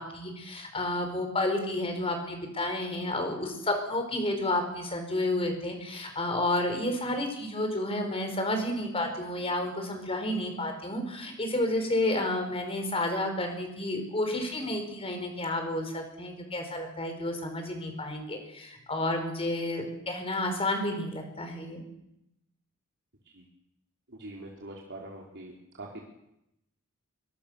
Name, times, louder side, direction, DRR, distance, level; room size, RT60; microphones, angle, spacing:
voice 1, 0.0-21.8, left 1 dB, 25° left, 5 dB, 5.3 m, -31 dB
voice 2, 24.2-25.5 25.8-26.1, right 1 dB, 55° right, -2 dB, 3.7 m, -43 dB
24.0 x 24.0 x 6.8 m, 0.84 s
head